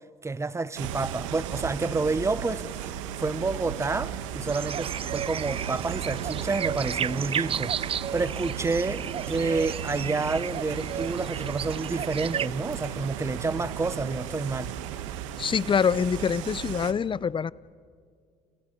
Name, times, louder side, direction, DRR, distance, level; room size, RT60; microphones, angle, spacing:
voice 1, 0.2-2.9 3.2-14.7, right 3 dB, 20° right, 1.0 m, -29 dB
sound 1, 0.8-16.9, right 10 dB, 85° right, 1.2 m, -35 dB
sound 2, 4.5-12.5, right 8 dB, 35° right, 0.5 m, -33 dB
voice 2, 15.4-17.5, left 7 dB, 30° left, 0.6 m, -25 dB
29.5 x 28.5 x 5.4 m
hypercardioid pair, 65°, 16 cm